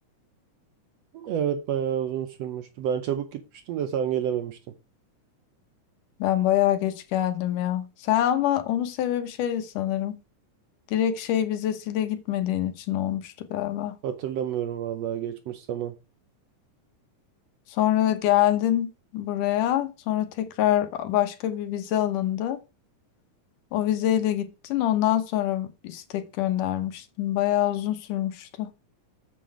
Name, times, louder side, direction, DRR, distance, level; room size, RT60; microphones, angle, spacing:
voice 1, 1.1-4.6 14.0-15.9, right 9 dB, 75° right, 1.6 m, -29 dB
voice 2, 6.2-10.2 10.9-14.0 17.7-22.6 23.7-28.7, left 12 dB, 90° left, 2.7 m, -25 dB
7.7 x 7.6 x 4.8 m
omnidirectional pair, 3.6 m